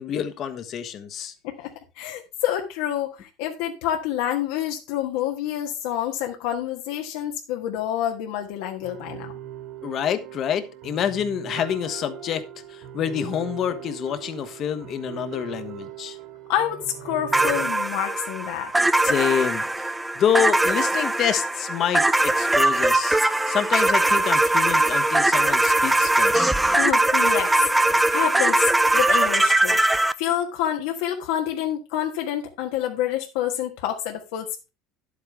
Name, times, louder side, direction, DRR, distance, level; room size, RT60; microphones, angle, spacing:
voice 1, 0.0-1.3 9.8-12.4 12.7-16.2 19.0-19.8 20.2-23.2 23.5-26.5, left 9 dB, 35° left, 1.2 m, -27 dB
voice 2, 2.0-9.3 16.5-18.7 26.7-27.5 27.8-28.7 28.9-29.8 30.2-34.7, left 11 dB, 75° left, 1.4 m, -28 dB
sound 1, 8.8-17.7, right 10 dB, 45° right, 2.3 m, -39 dB
sound 2, 17.3-30.1, right 2 dB, 5° right, 0.4 m, -21 dB
11.0 x 8.4 x 3.5 m
cardioid pair, 165°, 0 cm